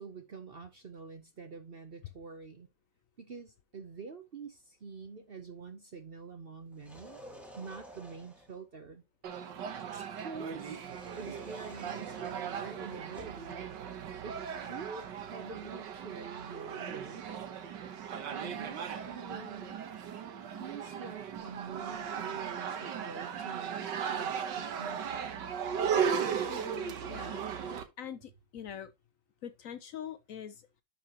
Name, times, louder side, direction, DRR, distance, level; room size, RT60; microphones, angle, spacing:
voice 1, 0.0-2.7 3.2-7.2 7.5-9.0 9.9-10.8 11.2-13.7 14.2-14.4 14.7-17.5 18.3-19.8 20.5-25.4, right 5 dB, 55° right, 0.6 m, -46 dB
sound 1, 6.7-8.6 10.8-13.5, right 1 dB, ahead, 2.4 m, -52 dB
sound 2, 9.2-27.8, right 7 dB, 70° right, 1.7 m, -37 dB
voice 2, 26.5-28.9 29.4-30.7, left 9 dB, 70° left, 0.8 m, -44 dB
11.0 x 5.9 x 2.9 m
omnidirectional pair, 2.0 m